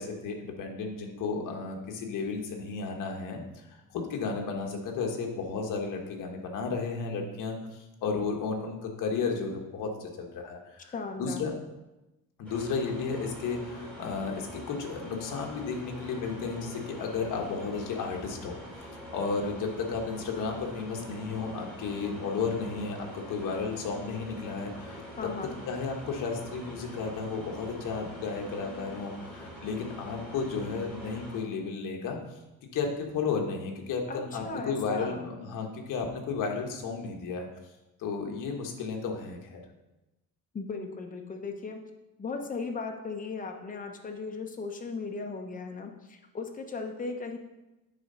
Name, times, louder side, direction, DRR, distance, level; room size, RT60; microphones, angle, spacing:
voice 1, 0.0-10.9 11.2-11.5 12.4-18.5 19.1-25.0 25.7-32.2 32.7-37.5 38.0-39.6, left 4 dB, 65° left, 2 dB, 1.4 m, -33 dB
voice 2, 10.9-11.6 25.2-25.5 34.1-35.3 40.5-41.8 42.2-47.4, left 4 dB, 25° left, 4 dB, 0.9 m, -37 dB
sound 1, 12.4-31.4, equal, 5° left, 2.6 m, -44 dB
9.1 x 3.8 x 5.5 m, 1.0 s
cardioid pair, 150°, 34 cm